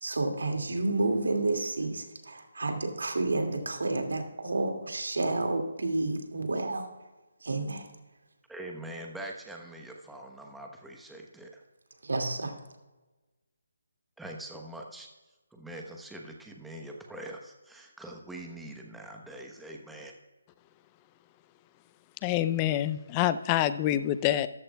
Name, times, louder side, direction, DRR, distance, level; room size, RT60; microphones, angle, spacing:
voice 1, 0.0-6.9 7.4-7.9 12.0-12.5, right 2 dB, 80° right, 4 dB, 2.2 m, -30 dB
voice 2, 8.5-11.6 14.2-15.1 15.5-20.1, right 1 dB, 5° right, 1 dB, 1.0 m, -43 dB
voice 3, 22.2-24.5, left 12 dB, 20° left, 14 dB, 0.4 m, -26 dB
13.5 x 13.5 x 2.3 m, 1.1 s
figure-of-eight pair, 160°, 0 cm